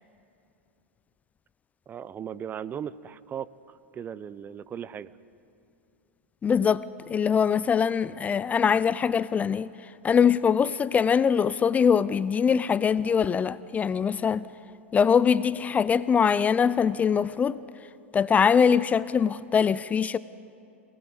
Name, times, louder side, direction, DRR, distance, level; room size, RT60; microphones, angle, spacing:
voice 1, 1.9-5.1, right 8 dB, 25° right, 0.7 m, -37 dB
voice 2, 6.4-9.7 10.0-14.5 14.9-17.6 18.1-20.2, left 7 dB, 20° left, 0.5 m, -23 dB
28.0 x 19.0 x 8.0 m
hypercardioid pair, 100°, 7 cm